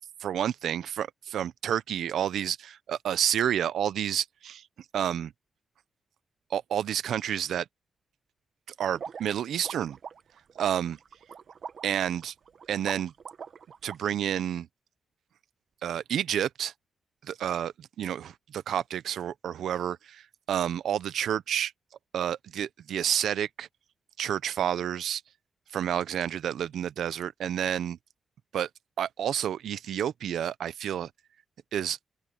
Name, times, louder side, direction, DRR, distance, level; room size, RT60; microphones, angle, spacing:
voice 1, 0.2-4.6 4.9-5.3 6.5-7.6 8.8-10.0 10.6-11.0 11.8-12.3 12.7-13.1 13.8-14.7 15.8-16.7 17.2-21.7 22.1-23.7 24.2-25.2 25.7-28.0 28.5-28.7 29.0-31.1 31.7-32.0, right 10 dB, 90° right, 0.7 m, -30 dB
sound 1, 8.9-14.0, right 6 dB, 55° right, 1.1 m, -43 dB
open air
wide cardioid pair, 130°, 0 cm